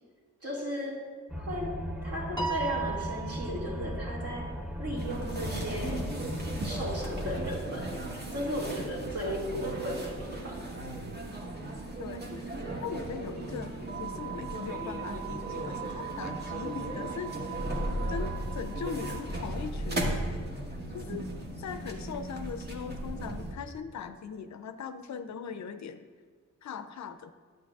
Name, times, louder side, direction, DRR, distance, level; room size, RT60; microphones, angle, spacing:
voice 1, 0.4-1.1 1.4-4.5 4.8-6.1 6.6-7.9 8.3-10.6, equal, 50° right, -3 dB, 2.1 m, -35 dB
sound 1, 1.3-7.6, equal, ahead, 0.6 m, -37 dB
Piano, 2.4-3.9, right 6 dB, 15° left, 1.0 m, -34 dB
sound 2, 5.0-23.5, right 2 dB, 30° right, 1.2 m, -36 dB
voice 2, 12.0-12.3 12.8-17.3 18.1-20.4 20.9-21.3 21.6-26.0 26.6-27.3, left 6 dB, 60° left, 10 dB, 0.5 m, -40 dB
9.1 x 7.9 x 2.4 m, 1.5 s
cardioid pair, 60°, 31 cm